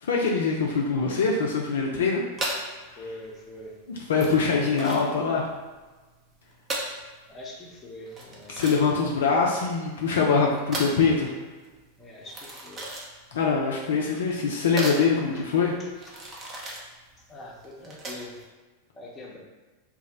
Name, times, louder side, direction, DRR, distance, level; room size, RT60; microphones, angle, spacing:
voice 1, 0.0-2.2 2.9-3.0 4.1-5.5 8.5-11.3 13.3-15.7, left 5 dB, 60° left, -1 dB, 0.4 m, -23 dB
sound 1, 2.3-18.5, right 1 dB, 25° right, 0.5 m, -37 dB
voice 2, 2.9-3.8 7.3-8.6 12.0-12.9 14.1-14.2 15.4-15.5 15.8-15.9 17.2-18.4 18.9-19.4, left 1 dB, 20° left, -2 dB, 0.6 m, -43 dB
2.3 x 2.0 x 3.8 m, 1.3 s
figure-of-eight pair, 90°, 0 cm